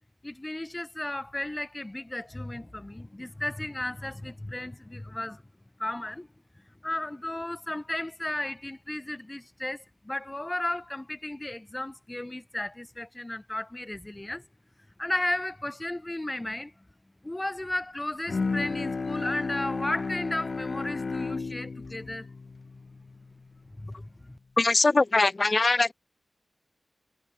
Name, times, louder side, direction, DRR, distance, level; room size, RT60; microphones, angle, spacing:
voice 1, 0.2-5.4 5.8-6.3 6.8-14.4 15.0-16.8 17.2-22.3 23.7-24.4, left 1 dB, 15° left, 1.7 m, -34 dB
Bowed string instrument, 18.3-23.7, left 4 dB, 55° left, 0.9 m, -33 dB
voice 2, 24.6-25.9, left 3 dB, 35° left, 0.3 m, -22 dB
wide cardioid pair, 100°, 0 cm